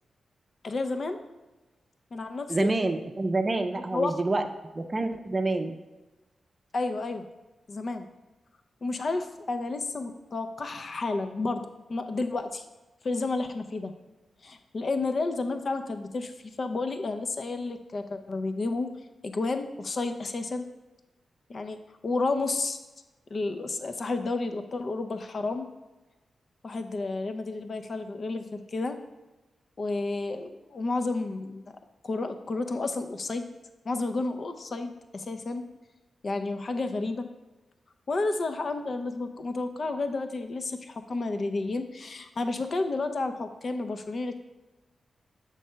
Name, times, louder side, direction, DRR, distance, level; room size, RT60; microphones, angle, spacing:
voice 1, 0.6-1.2 2.1-2.7 3.9-4.5 6.7-7.3 7.7-8.1 8.8-12.6 13.0-13.9 14.4-18.9 19.2-20.6 21.5-21.8 22.0-22.8 23.3-25.7 26.6-29.0 29.8-31.7 32.0-33.4 33.8-35.6 36.2-37.3 38.1-44.4, left 3 dB, 55° left, 7 dB, 0.6 m, -31 dB
voice 2, 2.5-4.4 4.7-5.7, right 2 dB, 35° right, 6 dB, 0.5 m, -27 dB
6.4 x 3.3 x 5.5 m, 1.1 s
cardioid pair, 50°, 0 cm